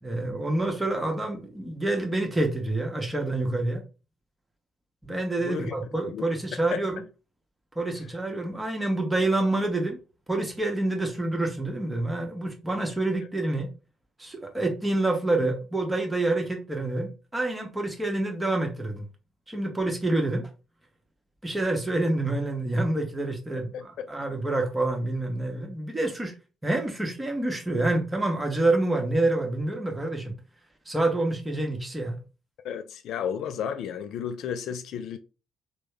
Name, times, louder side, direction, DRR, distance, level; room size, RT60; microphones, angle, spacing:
voice 1, 0.0-3.8 5.0-7.0 7.7-10.0 10.3-13.7 14.2-19.1 19.5-20.5 21.4-26.3 26.6-30.3 30.9-32.2, right 2 dB, 15° right, 1.2 m, -27 dB
voice 2, 5.4-5.8 6.1-6.2 6.7-6.8 23.7-24.1 32.6-35.2, left 8 dB, 65° left, 0.3 m, -33 dB
3.3 x 2.2 x 3.3 m
hypercardioid pair, 50°, 0 cm